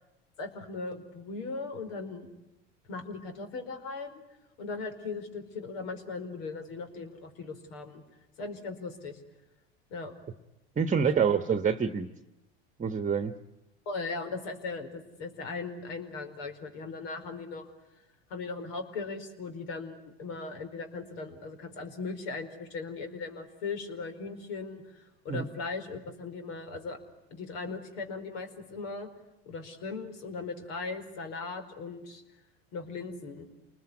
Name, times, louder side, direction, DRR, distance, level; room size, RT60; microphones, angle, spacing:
voice 1, 0.4-2.3 2.9-4.2 4.6-8.0 8.4-9.2 9.9-10.1 11.2-11.3 13.8-17.7 18.3-27.0 27.3-29.1 29.4-32.2 32.7-33.5, left 4 dB, 75° left, 7 dB, 4.8 m, -38 dB
voice 2, 10.8-12.1 12.8-13.3 25.3-25.5, right 6 dB, 25° right, 10 dB, 1.2 m, -26 dB
28.5 x 20.5 x 9.9 m, 0.96 s
supercardioid pair, 100°, 31 cm